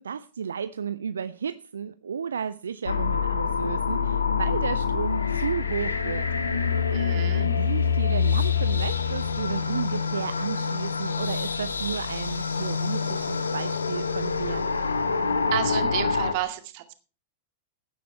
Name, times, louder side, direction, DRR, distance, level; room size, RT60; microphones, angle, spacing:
voice 1, 0.0-6.3 6.9-14.7, right 7 dB, 70° right, 0.5 m, -33 dB
sound 1, 2.8-16.3, left 6 dB, 75° left, 1.4 m, -26 dB
voice 2, 6.9-7.5 15.5-16.9, right 13 dB, 45° right, 2.1 m, -31 dB
16.0 x 10.0 x 4.5 m
figure-of-eight pair, 95°, 0 cm